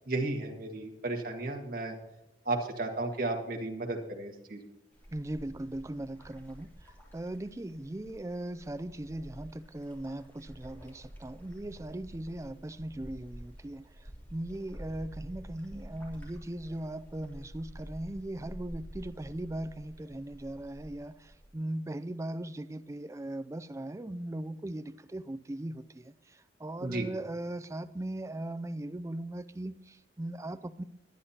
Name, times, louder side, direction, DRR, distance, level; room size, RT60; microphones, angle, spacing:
voice 1, 0.1-1.9 2.5-4.6 26.8-27.1, right 2 dB, 55° right, 2 dB, 1.9 m, -33 dB
sound 1, 4.9-21.5, equal, 10° left, 3.0 m, -49 dB
voice 2, 5.1-30.8, right 1 dB, 15° right, 12 dB, 0.4 m, -39 dB
21.0 x 9.7 x 2.9 m, 0.89 s
head